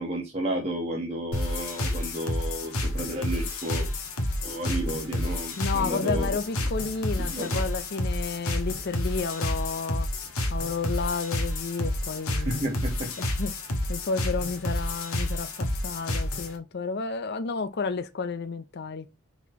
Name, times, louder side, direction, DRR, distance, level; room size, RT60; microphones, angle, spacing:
voice 1, 0.0-3.9 4.4-6.7 7.2-7.6 12.4-13.2, right 1 dB, 30° right, 1.7 m, -32 dB
sound 1, 1.3-16.6, left 1 dB, 75° left, 1.7 m, -30 dB
voice 2, 5.6-10.1 10.5-12.7 13.2-13.5 13.9-19.1, left 4 dB, 45° left, 0.5 m, -31 dB
5.9 x 4.2 x 4.5 m
head